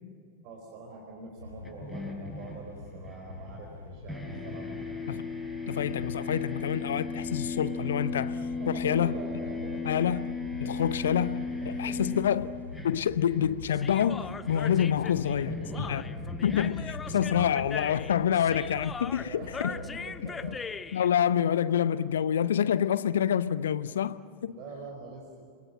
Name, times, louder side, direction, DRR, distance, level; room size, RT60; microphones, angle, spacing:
voice 1, 0.4-4.7 8.6-10.1 10.6-10.8 11.6-12.3 12.8-12.9 15.0-16.1 19.2-21.0 24.4-25.3, right 3 dB, 40° right, 4.6 m, -44 dB
sound 1, 1.4-20.6, left 3 dB, 80° left, 2.5 m, -45 dB
sound 2, 1.6-3.8 4.1-18.1, left 3 dB, ahead, 5.2 m, -37 dB
voice 2, 5.7-8.4 8.7-9.1 9.8-10.2 10.6-12.5 12.8-15.5 15.9-16.0 16.4-19.7 20.4-20.5 20.9-24.6, left 9 dB, 65° left, 0.7 m, -27 dB
Human voice, 13.7-21.1, left 5 dB, 15° left, 0.7 m, -40 dB
28.0 x 22.5 x 7.6 m
figure-of-eight pair, 90°, 0 cm